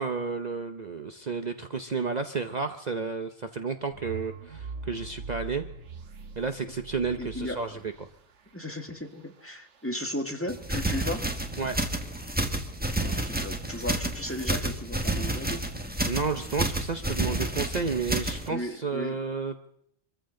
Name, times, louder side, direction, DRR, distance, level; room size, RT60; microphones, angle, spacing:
voice 1, 0.0-5.6 6.4-7.7 11.6-11.8 16.1-19.5, right 4 dB, 40° right, 7 dB, 0.9 m, -31 dB
sound 1, 3.9-9.9 11.2-12.0, right 5 dB, 85° right, 1.5 m, -43 dB
voice 2, 7.2-7.8 8.5-11.3 13.0-15.7 18.5-19.2, left 1 dB, 10° left, 4 dB, 1.6 m, -35 dB
sound 2, 10.5-18.5, right 1 dB, 10° right, 1.4 m, -30 dB
24.5 x 14.5 x 3.8 m, 0.69 s
omnidirectional pair, 1.2 m